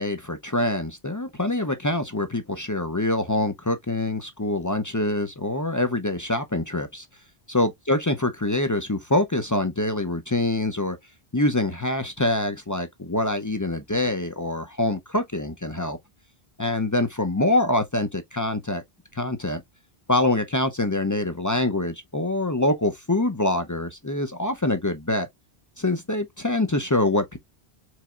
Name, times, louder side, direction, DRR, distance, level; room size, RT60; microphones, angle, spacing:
voice 1, 0.0-7.1 7.5-11.0 11.3-16.0 16.6-18.8 19.1-19.6 20.1-25.3 25.8-27.4, left 2 dB, 25° left, 0.4 m, -25 dB
4.6 x 4.0 x 2.3 m
omnidirectional pair, 1.1 m